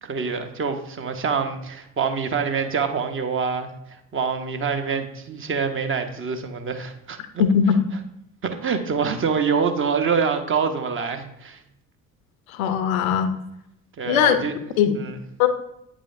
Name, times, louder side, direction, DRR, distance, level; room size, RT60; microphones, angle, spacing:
voice 1, 0.0-7.2 8.4-11.6 14.0-14.5 14.9-15.2, right 6 dB, 30° right, 6 dB, 0.8 m, -25 dB
voice 2, 7.4-7.8 12.5-13.3 14.1-14.4 14.8-14.9 15.4-15.5, left 8 dB, 70° left, 10 dB, 0.7 m, -19 dB
8.9 x 5.0 x 2.5 m, 0.80 s
figure-of-eight pair, 45°, 43 cm